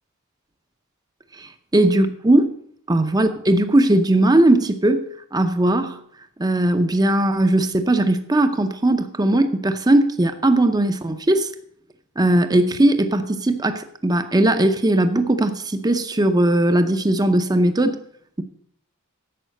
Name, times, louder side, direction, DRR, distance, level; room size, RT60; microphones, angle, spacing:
voice 1, 1.4-2.5 2.9-6.0 6.4-11.5 12.2-18.0, right 1 dB, 20° right, 8 dB, 0.7 m, -18 dB
11.0 x 7.4 x 6.5 m, 0.66 s
head